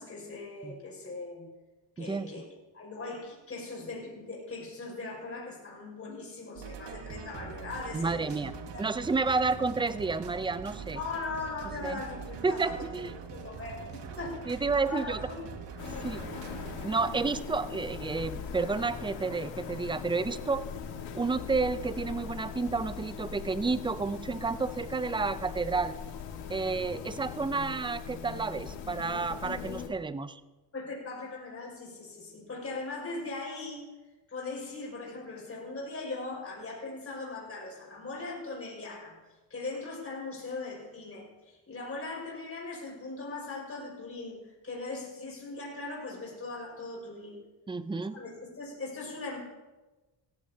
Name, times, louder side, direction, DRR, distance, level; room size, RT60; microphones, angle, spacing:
voice 1, 0.0-1.5 2.0-2.5 2.7-8.3 8.6-9.1 10.9-12.8 13.3-15.4 15.8-16.0 30.7-33.8 34.3-39.2 39.5-47.4 48.1-49.4, left 3 dB, 30° left, -3 dB, 5.4 m, -40 dB
voice 2, 2.0-2.4 7.9-8.5 8.8-11.0 11.8-12.0 12.4-13.1 14.5-15.2 16.0-16.2 16.8-20.6 21.1-26.0 26.5-30.4 47.7-48.2, right 4 dB, 10° right, 13 dB, 0.4 m, -30 dB
sound 1, 6.6-16.9, right 5 dB, 75° right, 1.8 m, -43 dB
sound 2, 15.8-29.9, left 7 dB, 85° left, 1.8 m, -40 dB
17.0 x 15.0 x 2.8 m, 1.2 s
cardioid pair, 105°, 43 cm